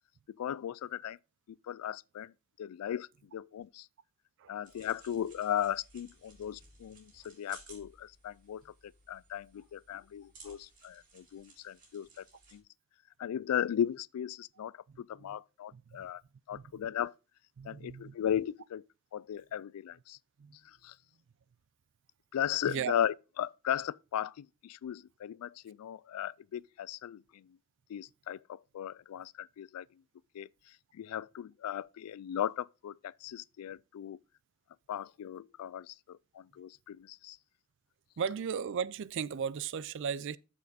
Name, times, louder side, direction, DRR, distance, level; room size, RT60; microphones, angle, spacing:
voice 1, 0.3-1.2 1.5-2.3 2.6-3.9 4.5-12.3 12.5-12.6 13.2-16.2 16.5-17.1 17.6-18.8 19.1-20.2 20.6-21.0 22.3-27.6 27.9-29.9 30.3-34.2 34.9-37.4, left 10 dB, 85° left, 0.3 m, -37 dB
sound 1, 4.6-12.6, right 3 dB, 40° right, 3.5 m, -58 dB
voice 2, 17.6-18.1 20.4-20.6 22.7-22.9 38.2-40.4, right 7 dB, 60° right, 0.4 m, -36 dB
7.3 x 6.6 x 4.1 m
head